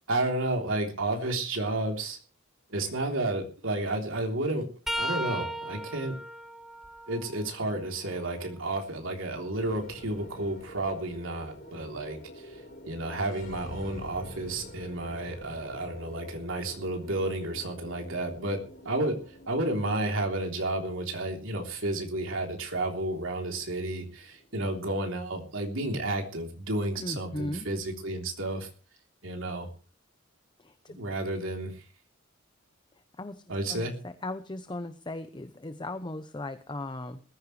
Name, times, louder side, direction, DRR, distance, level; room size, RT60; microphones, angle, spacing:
voice 1, 0.1-2.2 2.7-4.7 5.0-6.2 7.1-19.2 19.5-28.7 29.2-29.7 31.0-31.8 33.5-33.9, right 2 dB, 75° right, 3 dB, 3.5 m, -31 dB
sound 1, 4.9-8.6 9.2-11.1 14.0-14.2 15.4-15.6 16.9-17.0, equal, ahead, 1.0 m, -38 dB
sound 2, 9.5-27.9, equal, 45° left, 4.2 m, -48 dB
voice 2, 27.0-27.7 30.6-31.0 33.2-33.4 33.7-37.2, left 2 dB, 20° left, 10 dB, 0.8 m, -37 dB
20.5 x 14.5 x 3.3 m, 0.36 s
head